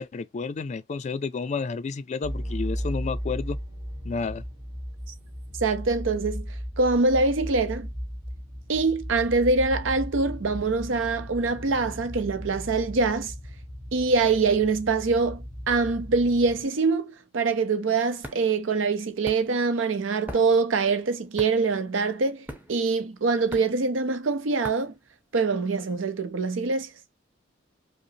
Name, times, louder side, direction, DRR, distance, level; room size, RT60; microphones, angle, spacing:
voice 1, 0.0-3.6 4.0-4.4, left 4 dB, 35° left, 0.3 m, -31 dB
sound 1, 2.2-16.6, equal, 70° right, 1.9 m, -36 dB
voice 2, 5.6-6.5 6.8-7.9 8.7-13.3 13.9-24.9 25.3-26.9, right 4 dB, 90° right, 0.6 m, -24 dB
sound 2, 17.6-25.8, equal, 10° right, 0.6 m, -43 dB
5.1 x 2.0 x 2.7 m
head